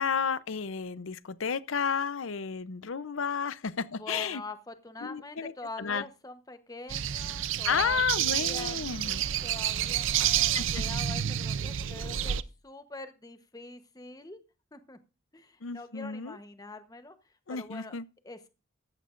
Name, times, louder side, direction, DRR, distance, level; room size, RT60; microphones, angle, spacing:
voice 1, 0.0-4.4 5.0-5.5 5.8-6.0 7.6-9.2 10.3-10.8 15.6-16.4 17.5-18.0, left 6 dB, 75° left, 0.7 m, -32 dB
voice 2, 4.0-8.8 9.0-14.4 14.7-15.0 15.3-17.2 17.5-17.9 18.2-18.5, left 2 dB, 20° left, 0.9 m, -44 dB
sound 1, 6.9-12.4, right 10 dB, 70° right, 0.5 m, -29 dB
15.0 x 12.5 x 2.5 m
head